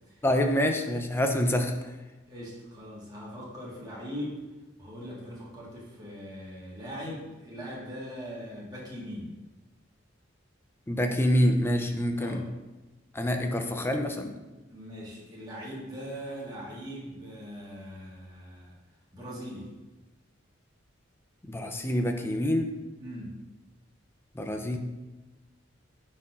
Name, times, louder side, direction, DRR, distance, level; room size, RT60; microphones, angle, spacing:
voice 1, 0.2-1.7 10.9-12.4 13.1-14.3 21.5-22.7 24.4-24.8, equal, 10° left, 5 dB, 0.5 m, -26 dB
voice 2, 2.3-4.4 4.8-9.3 12.2-12.5 14.7-18.7 19.1-19.7 23.0-23.4, equal, 20° right, -6 dB, 1.5 m, -40 dB
9.3 x 4.2 x 2.5 m, 1.1 s
head